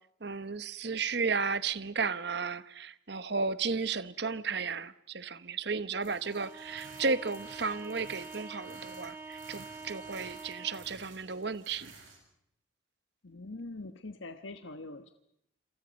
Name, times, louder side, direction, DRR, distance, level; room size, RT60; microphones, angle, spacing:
voice 1, 0.2-11.9, right 4 dB, 55° right, 1.0 m, -34 dB
sound 1, 6.0-12.2, right 4 dB, 80° right, 7.6 m, -54 dB
Bowed string instrument, 6.2-11.1, right 4 dB, 10° right, 2.4 m, -46 dB
voice 2, 13.2-15.1, left 2 dB, 75° left, 1.2 m, -43 dB
28.0 x 27.5 x 5.3 m
head